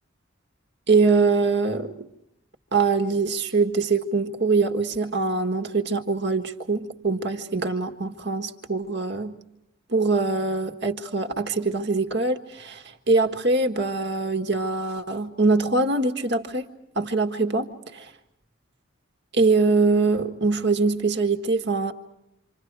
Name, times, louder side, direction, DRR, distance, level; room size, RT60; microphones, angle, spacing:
voice 1, 0.9-2.1 2.7-9.4 9.9-16.6 16.9-18.1 19.3-21.9, right 3 dB, 55° right, 1.7 m, -23 dB
28.5 x 26.5 x 4.8 m
head